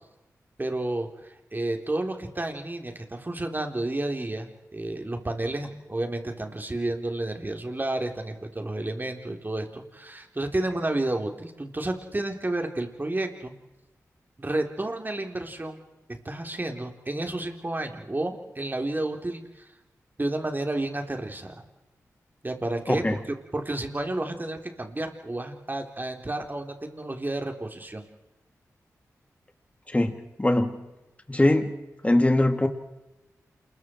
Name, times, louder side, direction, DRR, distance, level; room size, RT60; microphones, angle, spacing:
voice 1, 0.6-13.5 14.4-15.8 16.2-19.7 20.2-21.5 22.4-23.0 23.5-28.1, right 2 dB, 30° right, 4 dB, 4.0 m, -31 dB
voice 2, 29.9-30.7 31.3-31.7 32.0-32.7, left 1 dB, 20° left, 6 dB, 2.8 m, -22 dB
28.0 x 22.0 x 4.7 m, 0.99 s
cardioid pair, 45°, 6 cm